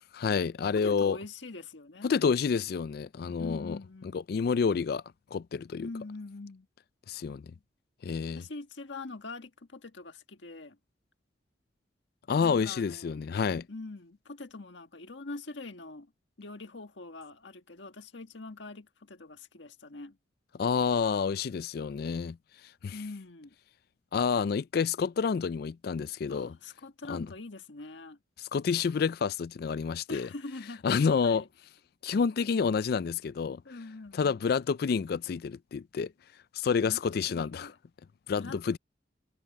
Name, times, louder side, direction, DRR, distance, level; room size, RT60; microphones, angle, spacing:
voice 1, 0.1-1.2 2.0-3.8 4.1-5.0 5.3-5.9 7.1-7.5 8.0-8.4 12.3-13.7 20.5-22.4 22.8-22.9 24.1-26.5 27.1-27.3 28.4-30.3 30.8-31.4 32.0-33.6 34.1-36.1 36.5-37.7 38.3-38.8, left 5 dB, 55° left, 0.3 m, -29 dB
voice 2, 0.7-2.1 3.4-4.2 5.8-6.7 8.3-10.8 12.4-13.2 13.7-16.1 16.4-20.2 22.9-23.5 26.3-28.2 30.1-30.8 31.2-31.5 33.6-34.4 36.8-37.0 37.3-37.8 38.4-38.8, left 3 dB, 80° left, 1.6 m, -43 dB
head